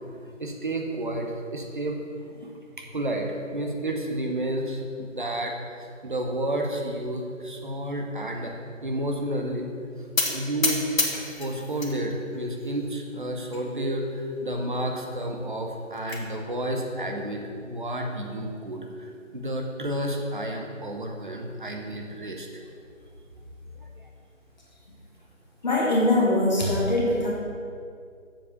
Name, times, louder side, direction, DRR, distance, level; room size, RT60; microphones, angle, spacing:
voice 1, 0.4-2.0 2.3-8.5 8.8-9.7 10.3-10.8 11.4-22.5, right 1 dB, 40° right, 2 dB, 0.9 m, -31 dB
sound 1, 10.2-12.0 12.3-13.0 13.5-13.6 13.9-14.0 14.4-14.5 15.6-16.2, left 3 dB, 80° left, 1.5 m, -28 dB
voice 2, 25.6-27.3, left 1 dB, 30° left, -5 dB, 1.7 m, -22 dB
7.2 x 4.9 x 6.6 m, 2.3 s
figure-of-eight pair, 170°, 40 cm